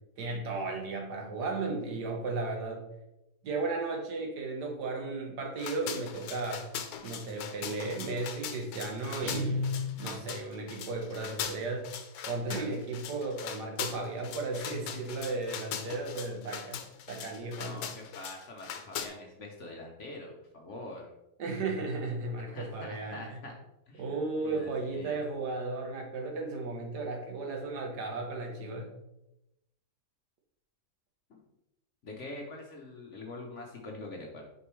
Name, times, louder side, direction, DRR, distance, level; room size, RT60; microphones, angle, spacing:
voice 1, 0.2-2.8 3.4-6.7 7.0-9.6 10.0-11.9 12.2-16.8 17.1-17.8 21.4-23.4 24.0-28.9, right 3 dB, 70° right, 1 dB, 1.7 m, -35 dB
sound 1, 5.6-19.1, left 8 dB, 85° left, 1.3 m, -40 dB
Guitar, 9.2-10.5, left 2 dB, 90° right, 1.4 m, -33 dB
voice 2, 17.6-21.1 22.5-23.5 23.9-24.0 24.4-25.2 31.3-31.4 32.0-34.4, left 2 dB, 55° left, 1 dB, 1.0 m, -44 dB
6.6 x 5.2 x 3.1 m, 0.90 s
omnidirectional pair, 1.9 m